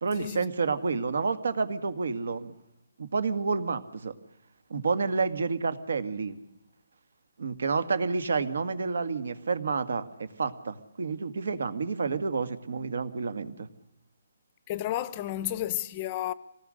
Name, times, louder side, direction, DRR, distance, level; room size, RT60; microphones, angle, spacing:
voice 1, 0.0-2.5 3.0-4.2 4.7-6.4 7.4-13.7, right 4 dB, 70° right, 2.0 m, -29 dB
voice 2, 14.7-16.3, left 13 dB, 25° left, 0.7 m, -31 dB
26.0 x 19.0 x 6.6 m
hypercardioid pair, 170°, 0 cm